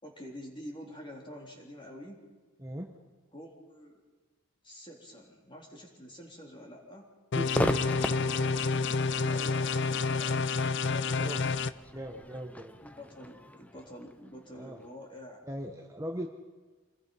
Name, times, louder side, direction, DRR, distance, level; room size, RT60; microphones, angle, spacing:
voice 1, 0.0-2.3 3.3-4.0 4.6-7.1 9.1-11.3 12.8-15.4, left 1 dB, 25° left, 0 dB, 3.7 m, -47 dB
voice 2, 2.6-2.9 7.3-8.0 11.1-11.5 11.9-12.7 14.5-14.8 15.5-16.3, equal, 15° right, 2 dB, 1.2 m, -39 dB
sound 1, 7.3-11.7, left 4 dB, 55° left, 0.6 m, -29 dB
Crowd / Fireworks, 7.5-14.9, equal, 5° left, 0.6 m, -38 dB
26.5 x 20.5 x 5.6 m, 1.3 s
head